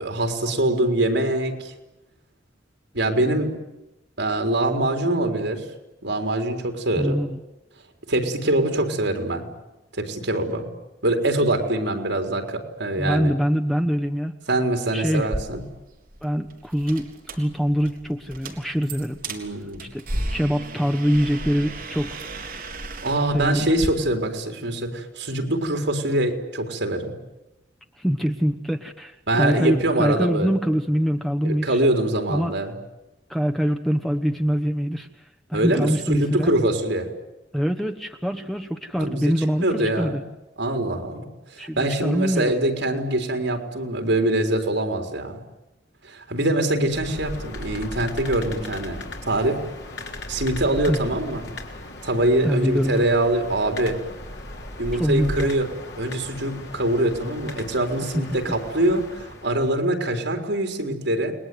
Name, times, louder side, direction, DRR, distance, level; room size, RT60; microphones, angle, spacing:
voice 1, 0.0-1.7 2.9-3.5 4.2-5.6 6.0-7.2 8.1-9.5 10.0-10.7 11.0-13.3 14.5-15.6 19.3-19.9 23.0-27.2 29.3-30.5 31.4-32.7 35.5-37.1 39.0-40.2 40.6-41.3 41.5-45.4 46.0-49.6 50.3-51.5 52.0-54.0 54.8-55.7 56.0-61.3, right 1 dB, 70° right, 4 dB, 4.1 m, -24 dB
voice 2, 7.0-7.4 13.0-14.3 14.9-15.3 16.2-19.2 19.9-20.0 20.3-22.2 23.3-23.7 28.0-31.8 32.3-32.5 33.3-35.1 35.5-36.5 37.5-40.2 41.6-42.5 50.9-51.0 52.4-53.0 55.0-55.5, equal, ahead, 4 dB, 1.1 m, -24 dB
sound 1, 15.2-23.9, right 1 dB, 50° right, 3.9 m, -35 dB
sound 2, 46.9-59.8, left 1 dB, 65° left, 3.8 m, -37 dB
29.5 x 21.0 x 9.4 m, 0.97 s
head